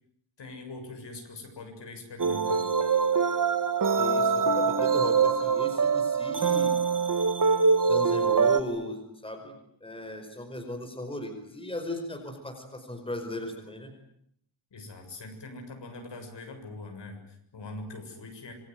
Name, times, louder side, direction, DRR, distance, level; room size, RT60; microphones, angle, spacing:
voice 1, 0.4-2.6 14.7-18.5, left 2 dB, 60° left, 4 dB, 7.3 m, -42 dB
sound 1, 2.2-8.6, right 5 dB, 40° right, 1.9 m, -24 dB
voice 2, 4.0-6.8 7.8-9.5 9.8-13.9, left 1 dB, 10° left, 4 dB, 5.1 m, -37 dB
27.0 x 23.5 x 9.4 m, 0.73 s
wide cardioid pair, 180°, 49 cm